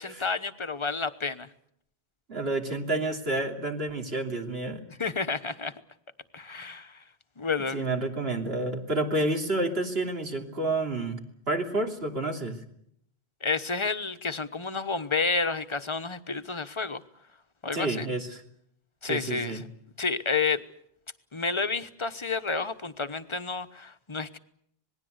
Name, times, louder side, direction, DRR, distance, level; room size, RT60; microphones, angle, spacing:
voice 1, 0.0-1.5 5.0-5.7 6.3-7.0 7.4-7.9 13.4-17.0 17.6-18.1 19.0-19.6 20.0-20.6 21.3-24.4, left 4 dB, 30° left, 11 dB, 1.1 m, -30 dB
voice 2, 2.3-4.8 7.7-11.2 11.5-12.6 17.7-18.4 19.0-19.6, right 2 dB, 70° right, 3 dB, 3.3 m, -29 dB
26.5 x 19.5 x 8.1 m, 0.72 s
omnidirectional pair, 1.1 m